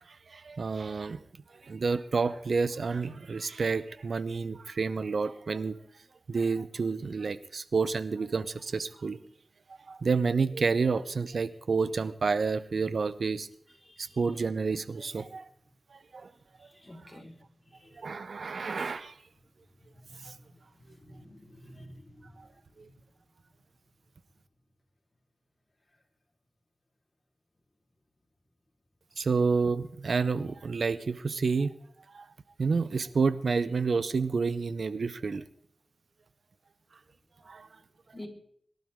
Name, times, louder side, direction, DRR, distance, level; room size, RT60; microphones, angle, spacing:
voice 1, 0.3-1.2 1.6-5.8 6.3-9.2 9.9-13.5 14.0-15.4 15.9-16.3 18.0-19.1 20.2-20.3 22.8-22.9 29.2-31.7 32.1-32.3 32.6-35.4 37.5-37.7, right 4 dB, 70° right, 15 dB, 0.8 m, -29 dB
voice 2, 16.8-17.3 17.7-17.9 20.1-20.2 21.1-22.3 38.1-38.3, left 1 dB, 25° left, 0 dB, 4.2 m, -47 dB
22.0 x 12.0 x 3.7 m, 0.64 s
cardioid pair, 55°, 0 cm